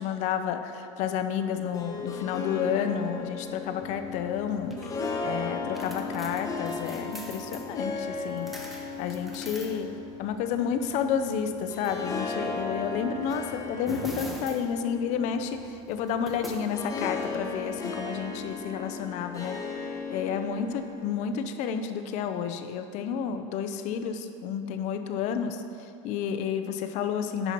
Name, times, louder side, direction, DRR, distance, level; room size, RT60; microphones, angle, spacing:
voice 1, 0.0-8.5 9.0-9.9 10.2-19.6 20.1-25.6 26.0-27.5, left 7 dB, 50° left, 8 dB, 0.6 m, -31 dB
Harp, 1.5-21.4, left 4 dB, 20° left, 1.2 m, -36 dB
sound 1, 3.8-18.5, right 1 dB, ahead, 0.9 m, -46 dB
10.0 x 5.5 x 4.6 m, 2.5 s
supercardioid pair, 125°, 15 cm